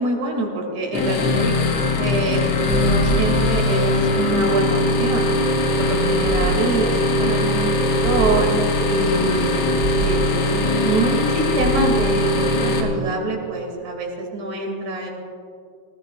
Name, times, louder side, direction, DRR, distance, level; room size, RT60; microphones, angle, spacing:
voice 1, 0.0-1.6 2.0-5.3 5.8-8.6 8.9-15.1, right 2 dB, 70° right, 0 dB, 3.6 m, -25 dB
sound 1, 0.9-12.8, left 2 dB, 60° left, 2.2 m, -20 dB
sound 2, 2.7-4.4 4.7-13.4, right 4 dB, 40° right, 1.8 m, -29 dB
19.5 x 19.5 x 2.4 m, 2.4 s
omnidirectional pair, 3.3 m